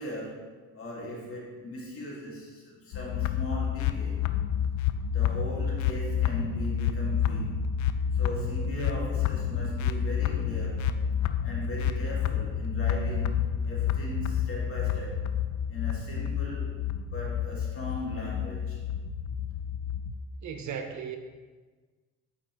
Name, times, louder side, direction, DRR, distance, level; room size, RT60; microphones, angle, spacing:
voice 1, 0.0-4.3 5.1-7.7 8.1-10.9 11.4-15.2 15.7-16.9 17.1-18.8, left 1 dB, 45° left, -4 dB, 1.9 m, -38 dB
sound 1, 2.9-20.1, left 8 dB, 70° left, 0.5 m, -29 dB
voice 2, 20.4-21.2, right 7 dB, 70° right, 6 dB, 0.7 m, -36 dB
8.4 x 4.9 x 2.9 m, 1.4 s
cardioid pair, 90°, 30 cm